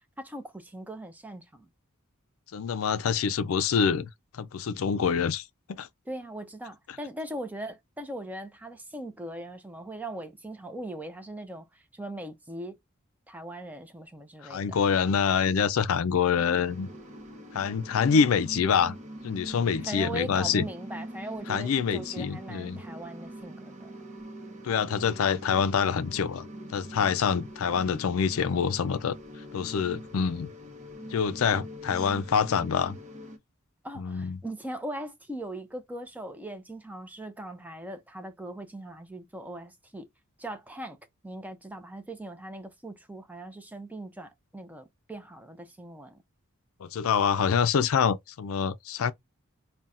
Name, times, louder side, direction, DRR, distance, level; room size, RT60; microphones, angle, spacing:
voice 1, 0.2-1.7 6.1-12.8 13.3-14.8 19.9-23.9 33.8-40.1 40.4-41.0 41.2-46.2, right 1 dB, 5° right, 0.5 m, -40 dB
voice 2, 2.5-4.1 4.3-5.9 14.5-16.9 17.5-18.9 19.2-20.7 21.5-22.8 24.6-29.2 29.5-30.5 31.1-33.0 34.0-34.4 46.8-49.1, left 6 dB, 70° left, 0.4 m, -26 dB
sound 1, 16.3-33.4, equal, 35° right, 0.9 m, -44 dB
5.5 x 2.2 x 2.5 m
head